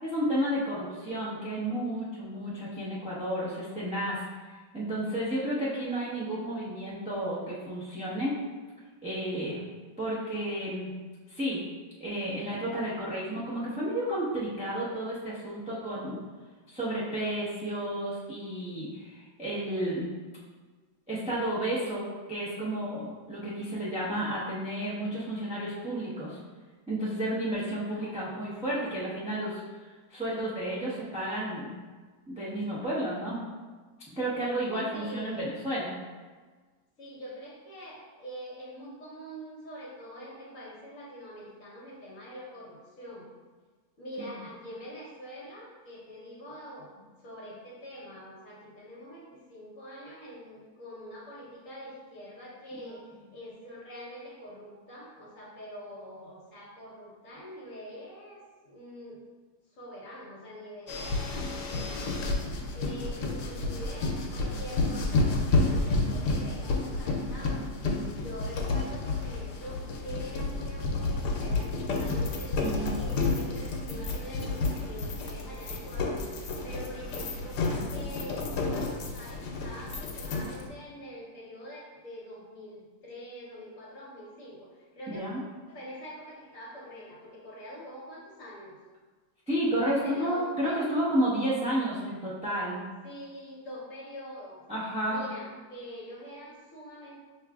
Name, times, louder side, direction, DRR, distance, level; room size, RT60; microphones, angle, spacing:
voice 1, 0.0-4.2 4.7-8.3 9.0-9.6 10.0-10.9 11.3-11.6 12.0-16.2 16.7-20.1 21.1-26.4 26.9-29.6 30.1-31.7 32.3-33.4 34.1-36.0 52.8-53.0 72.6-73.0 85.1-85.4 89.5-92.9 94.7-95.2, right 1 dB, 10° right, -8 dB, 0.4 m, -31 dB
voice 2, 27.9-28.3 34.9-35.5 37.0-43.3 44.0-53.1 53.3-59.2 59.7-62.1 62.7-67.7 68.2-77.6 77.9-85.2 85.7-88.8 89.8-90.9 93.0-94.6 95.0-97.2, equal, 55° left, -5 dB, 1.2 m, -45 dB
sound 1, 60.9-80.7, left 3 dB, 85° left, 1.2 m, -30 dB
sound 2, 61.8-79.7, right 5 dB, 80° right, 1.3 m, -47 dB
5.8 x 3.1 x 2.3 m, 1.4 s
omnidirectional pair, 1.8 m